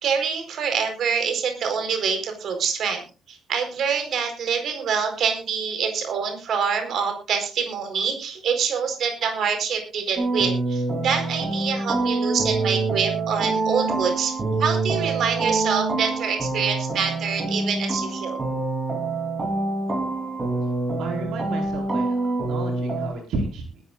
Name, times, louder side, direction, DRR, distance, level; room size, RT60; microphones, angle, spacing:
voice 1, 0.0-3.0 3.3-18.4, right 6 dB, 55° right, 6 dB, 4.5 m, -26 dB
sound 1, 10.2-23.1, right 3 dB, 25° right, 3.7 m, -26 dB
voice 2, 21.0-23.8, right 2 dB, 70° right, 1 dB, 4.8 m, -32 dB
21.0 x 13.5 x 2.5 m, 0.32 s
cardioid pair, 160°, 0 cm